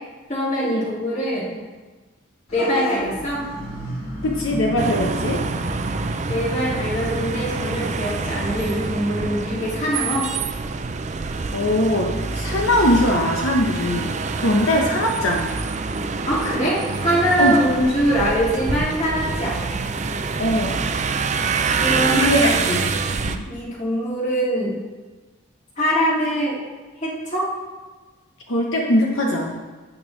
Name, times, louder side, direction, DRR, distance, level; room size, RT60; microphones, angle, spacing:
voice 1, 0.3-1.6 2.5-3.5 6.3-10.3 16.3-19.8 21.8-22.6 23.5-24.8 25.8-26.6 27.0-27.5, equal, 35° left, -5 dB, 2.4 m, -23 dB
Vehicle horn car horn honking / Bus, 2.5-8.6, equal, 85° left, 3.4 m, -33 dB
voice 2, 4.2-5.5 11.5-15.6 17.4-17.6 20.4-20.8 22.1-23.4 28.5-29.6, left 1 dB, 70° left, 0 dB, 1.0 m, -21 dB
sound 1, 4.8-23.4, right 4 dB, 35° right, 0.4 m, -26 dB
12.5 x 8.3 x 3.3 m, 1.3 s
head